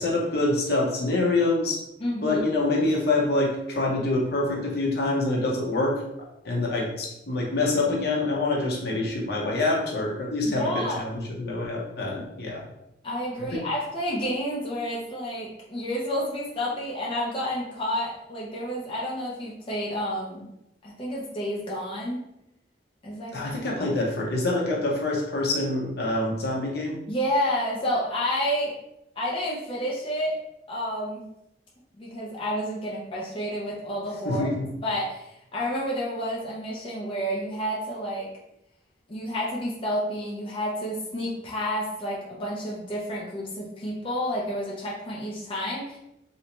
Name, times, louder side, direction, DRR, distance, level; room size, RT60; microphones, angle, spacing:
voice 1, 0.0-1.8 2.2-6.0 6.4-12.6 13.5-13.6 23.3-27.0 34.2-34.7, left 2 dB, 65° left, -2 dB, 0.8 m, -26 dB
voice 2, 2.0-2.4 10.5-11.0 13.0-20.5 20.8-22.3 23.0-23.9 27.1-28.8 29.2-30.4 30.7-31.2 32.0-34.5 34.8-38.3 39.1-46.0, equal, 30° left, -5 dB, 0.6 m, -30 dB
3.3 x 2.7 x 2.9 m, 0.83 s
head